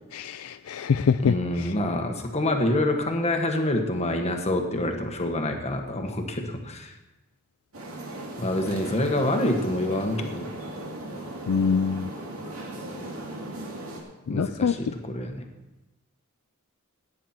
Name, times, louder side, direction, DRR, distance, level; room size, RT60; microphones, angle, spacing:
voice 1, 0.1-1.7 11.5-12.1 14.3-14.7, left 6 dB, 65° left, 11 dB, 0.4 m, -24 dB
voice 2, 1.2-6.9 8.4-10.5 14.3-15.4, left 1 dB, 30° left, 4 dB, 1.5 m, -27 dB
sound 1, 7.7-14.0, right 1 dB, 65° right, 2.6 m, -37 dB
16.5 x 9.5 x 4.5 m, 1.0 s
head